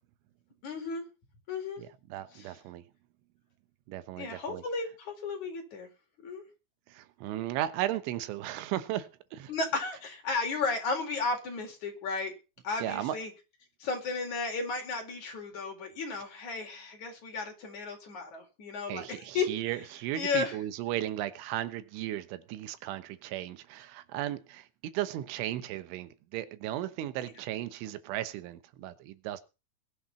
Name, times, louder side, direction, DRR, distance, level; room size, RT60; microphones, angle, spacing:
voice 1, 0.6-1.0 1.5-1.8 2.3-2.6 4.2-5.9 6.2-6.4 9.5-12.3 12.6-13.3 13.8-19.5 20.1-20.6 27.2-27.3, left 4 dB, 40° left, 5.2 m, -34 dB
voice 2, 2.1-2.8 3.9-4.6 6.9-9.5 12.8-13.2 18.9-24.7 24.9-29.4, right 13 dB, 85° right, 3.6 m, -35 dB
21.0 x 8.1 x 5.7 m
omnidirectional pair, 5.4 m